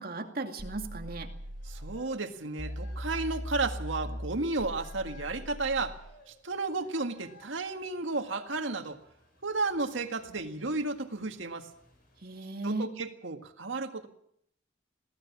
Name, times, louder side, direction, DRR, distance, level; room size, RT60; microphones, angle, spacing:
voice 1, 0.0-1.3 12.2-12.9, right 2 dB, 50° right, 4 dB, 2.4 m, -36 dB
sound 1, 0.6-2.0 2.6-6.0, equal, 25° right, 3.6 m, -39 dB
sound 2, 1.2-12.4, left 2 dB, 50° left, 7.6 m, -59 dB
voice 2, 1.7-6.0 6.3-9.0 9.4-11.7 12.6-14.1, right 3 dB, 90° right, 6 dB, 1.9 m, -33 dB
21.0 x 17.0 x 7.3 m, 0.71 s
head